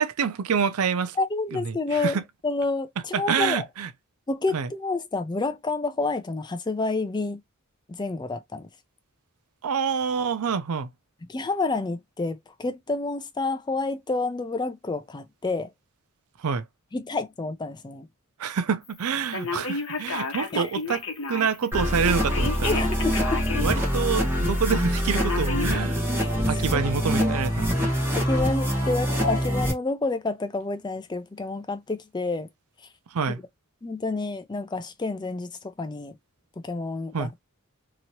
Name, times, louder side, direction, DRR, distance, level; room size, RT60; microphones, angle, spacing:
voice 1, 0.0-1.2 1.5-2.2 3.1-3.9 4.5-4.7 9.6-10.9 16.4-16.6 18.4-22.8 23.6-26.0 26.5-27.9 33.1-33.4 37.1-37.3, right 6 dB, 75° right, 0.5 m, -27 dB
voice 2, 1.2-2.2 2.4-3.6 4.3-7.4 8.0-8.6 11.3-15.7 16.9-18.1 20.5-20.7 22.6-23.4 26.2-26.3 26.6-26.7 28.1-32.5 33.3-33.4 33.8-35.5 35.8-36.2 36.6-37.3, left 3 dB, 20° left, 0.4 m, -29 dB
Telephone, 19.3-21.6 22.3-23.8 24.2-24.3 25.1-25.8, left 3 dB, 60° left, 0.9 m, -31 dB
sound 1, 21.7-29.7, equal, 10° right, 1.0 m, -25 dB
2.9 x 2.8 x 2.7 m
head